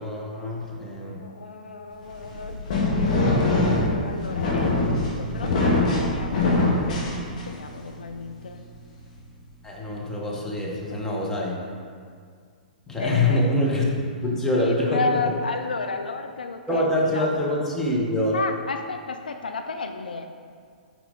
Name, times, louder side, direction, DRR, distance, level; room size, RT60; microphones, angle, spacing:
voice 1, 0.0-1.2 9.6-11.6 12.9-13.9 14.2-15.2 16.7-18.4, left 1 dB, 10° left, -4 dB, 1.4 m, -25 dB
voice 2, 1.2-8.6 13.0-13.5 14.6-17.3 18.3-20.3, left 4 dB, 70° left, 6 dB, 0.4 m, -33 dB
sound 1, 2.1-7.7, left 2 dB, 55° left, 1.8 m, -23 dB
9.3 x 4.6 x 4.0 m, 2.1 s
figure-of-eight pair, 115°, 5 cm